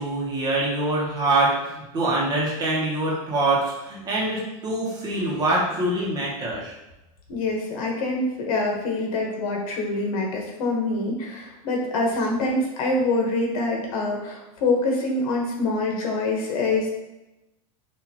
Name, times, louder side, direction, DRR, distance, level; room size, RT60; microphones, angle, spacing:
voice 1, 0.0-6.7, right 2 dB, 20° right, -5 dB, 1.1 m, -24 dB
voice 2, 7.3-16.9, left 2 dB, 75° left, 0 dB, 1.3 m, -25 dB
6.0 x 2.6 x 3.0 m, 0.98 s
supercardioid pair, 165°, 18 cm